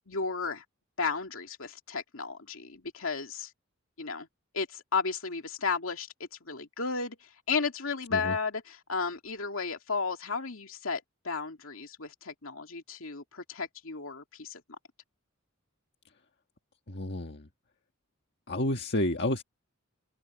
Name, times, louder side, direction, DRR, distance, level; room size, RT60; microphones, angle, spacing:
voice 1, 0.1-0.6 1.0-3.5 4.0-4.3 4.5-7.2 7.5-14.6, left 4 dB, 70° left, 2.6 m, -33 dB
voice 2, 16.9-17.5 18.5-19.4, left 1 dB, 55° left, 1.7 m, -30 dB
open air
head